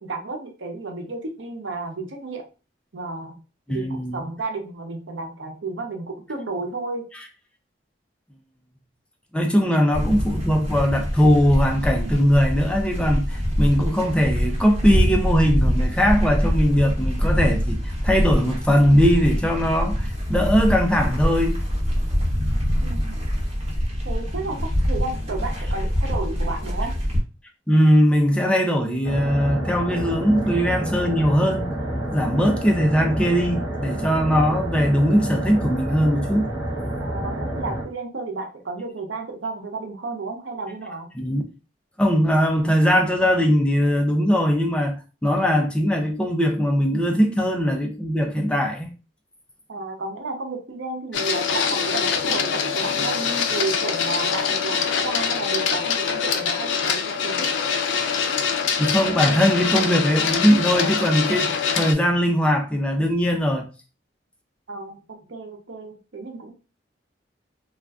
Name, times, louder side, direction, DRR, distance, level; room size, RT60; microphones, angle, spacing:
voice 1, 0.0-2.4 2.9-3.4 3.7-7.0 22.8-23.2 24.0-24.6 24.9-26.9 37.0-41.1 49.7-57.6 64.7-66.5, right 3 dB, 80° right, 0.7 m, -32 dB
voice 2, 3.7-4.2 9.3-17.8 18.0-21.6 27.7-31.7 32.1-36.5 41.2-41.4 42.0-48.9 58.8-63.7, equal, 5° left, 0.5 m, -20 dB
sound 1, 9.9-27.2, equal, 35° right, 1.0 m, -24 dB
sound 2, 29.0-37.8, right 1 dB, 15° right, 1.2 m, -28 dB
Printer, 51.1-61.9, left 6 dB, 80° left, 0.4 m, -24 dB
2.4 x 2.3 x 3.4 m
head